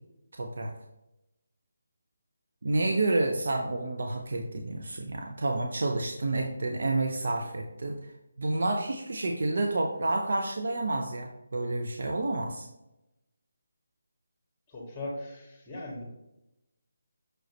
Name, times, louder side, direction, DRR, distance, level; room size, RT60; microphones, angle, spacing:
voice 1, 0.3-0.7 2.6-8.0 8.4-12.7, right 2 dB, 65° right, 3 dB, 0.7 m, -29 dB
voice 2, 14.7-16.0, left 1 dB, 10° left, -2 dB, 2.0 m, -39 dB
6.2 x 4.9 x 3.1 m, 0.90 s
figure-of-eight pair, 160°, 0 cm